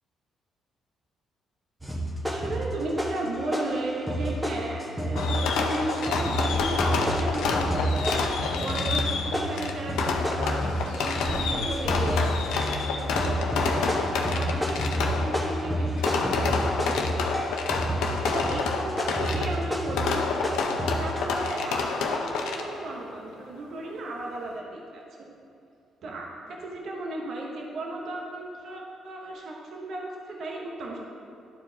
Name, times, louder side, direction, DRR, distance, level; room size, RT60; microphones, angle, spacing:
sound 1, 1.8-3.3 3.5-21.2, equal, 10° right, 1.3 m, -30 dB
voice 1, 2.2-20.3 20.8-25.3 26.0-31.1, right 2 dB, 65° right, -1 dB, 0.9 m, -35 dB
Fireworks, 5.2-22.9, left 4 dB, 90° left, 0.6 m, -29 dB
sound 2, 6.5-11.6 11.8-16.6, left 1 dB, 55° left, 1.2 m, -35 dB
12.0 x 4.6 x 2.8 m, 2.6 s
cardioid pair, 90°, 0 cm